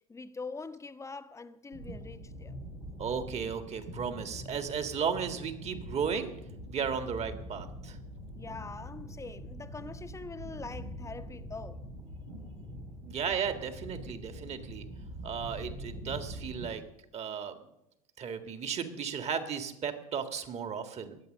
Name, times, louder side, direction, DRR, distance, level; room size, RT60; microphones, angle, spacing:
voice 1, 0.0-2.5 8.3-11.8, left 4 dB, 15° left, 1.0 m, -43 dB
sound 1, 1.7-16.7, equal, 90° right, 4.1 m, -44 dB
voice 2, 3.0-6.3 6.7-8.0 13.0-14.9 15.2-16.8 17.1-17.6 18.2-21.2, right 7 dB, 35° right, 1.8 m, -35 dB
21.5 x 8.1 x 6.5 m
hypercardioid pair, 75°, 18 cm